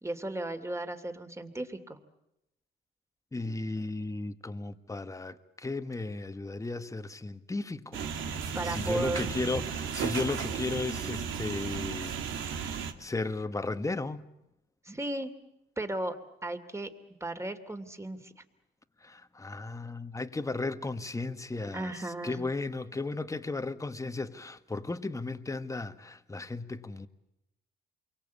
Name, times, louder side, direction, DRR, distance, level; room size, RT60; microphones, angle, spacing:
voice 1, 0.0-2.0 8.3-9.3 14.8-15.3 15.8-16.2 16.4-16.9 17.2-18.3 21.7-22.4, right 1 dB, 15° right, 2.8 m, -35 dB
voice 2, 3.3-8.0 8.3-12.2 12.4-12.7 13.0-14.2 19.0-27.1, left 3 dB, 15° left, 1.5 m, -35 dB
sound 1, 7.9-12.9, right 7 dB, 80° right, 2.3 m, -34 dB
28.5 x 23.5 x 8.4 m
cardioid pair, 90°, 20 cm